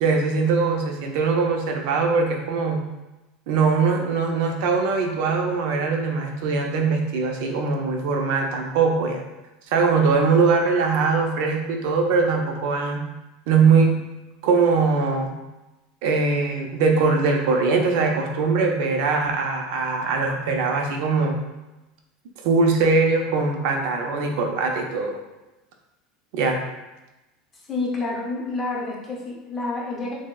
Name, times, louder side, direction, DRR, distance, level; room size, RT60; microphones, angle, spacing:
voice 1, 0.0-2.9 3.5-9.2 9.7-13.0 13.5-14.0 14.4-15.3 16.0-21.4 22.4-25.2 26.3-26.6, right 4 dB, 65° right, 2 dB, 0.5 m, -21 dB
voice 2, 27.7-30.1, left 3 dB, 20° left, -3 dB, 0.7 m, -28 dB
6.0 x 2.1 x 2.3 m, 1.0 s
supercardioid pair, 160°, 0 cm